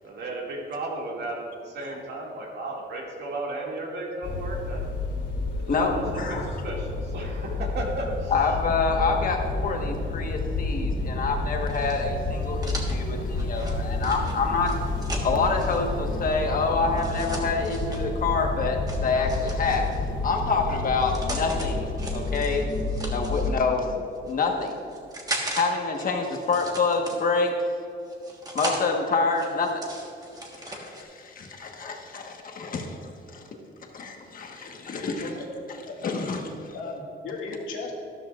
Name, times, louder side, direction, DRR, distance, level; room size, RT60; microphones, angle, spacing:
voice 1, 0.0-4.8 5.8-8.3, right 2 dB, 55° right, -2 dB, 2.2 m, -34 dB
sound 1, 4.2-23.6, left 2 dB, 60° left, 2.6 m, -30 dB
voice 2, 5.7-6.5 8.3-14.7 15.2-19.8 20.2-22.6 23.1-24.7 25.6-27.5 28.5-29.7 30.6-32.8 33.9-35.3 36.0-36.7, left 4 dB, 45° left, 2 dB, 1.3 m, -27 dB
sound 2, 11.7-15.8 16.9-18.0 18.9-20.1 20.8-21.7 22.0-23.5 24.1-25.6 25.9-27.5 28.1-28.8 29.3-31.0, right 2 dB, 20° right, 1.4 m, -37 dB
voice 3, 34.9-35.4 35.9-36.2 36.7-37.9, left 3 dB, 85° left, -2 dB, 2.1 m, -36 dB
13.0 x 12.5 x 2.5 m, 2.7 s
cardioid pair, 150°, 20 cm